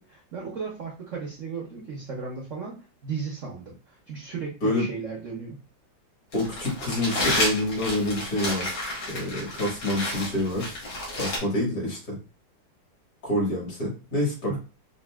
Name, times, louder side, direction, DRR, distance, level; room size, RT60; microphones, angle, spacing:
voice 1, 0.0-5.6 14.5-14.6, right 5 dB, 60° right, -2 dB, 0.8 m, -35 dB
Crumpling crinkling, 6.3-11.4, left 1 dB, 80° left, 2.1 m, -30 dB
voice 2, 6.3-10.8 11.1-12.2 13.2-14.6, left 1 dB, 55° left, -3 dB, 2.2 m, -27 dB
5.1 x 2.5 x 2.3 m, 0.33 s
omnidirectional pair, 2.1 m